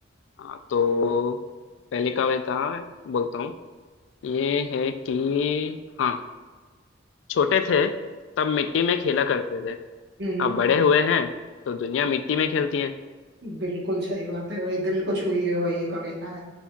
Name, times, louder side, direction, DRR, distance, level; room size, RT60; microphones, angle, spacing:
voice 1, 0.4-1.4 1.9-3.5 4.2-6.2 7.3-7.9 8.4-9.8 10.4-11.3 11.7-13.0, left 6 dB, 80° left, 10 dB, 0.3 m, -24 dB
voice 2, 10.2-10.6 13.4-16.4, equal, 60° right, -4 dB, 1.2 m, -28 dB
7.0 x 2.6 x 2.3 m, 1.4 s
head